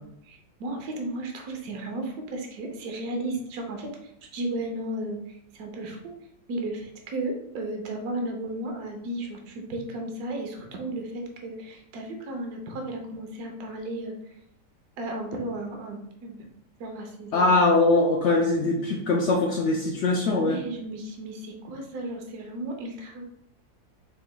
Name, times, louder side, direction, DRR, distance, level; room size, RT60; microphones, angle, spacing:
voice 1, 0.3-6.0 6.5-14.3 15.0-16.4 16.8-17.5 18.6-18.7 20.3-23.2, right 1 dB, 70° right, 2 dB, 1.2 m, -34 dB
voice 2, 17.3-20.6, left 2 dB, 85° left, 0 dB, 0.6 m, -22 dB
4.8 x 4.0 x 2.2 m, 0.74 s
omnidirectional pair, 1.8 m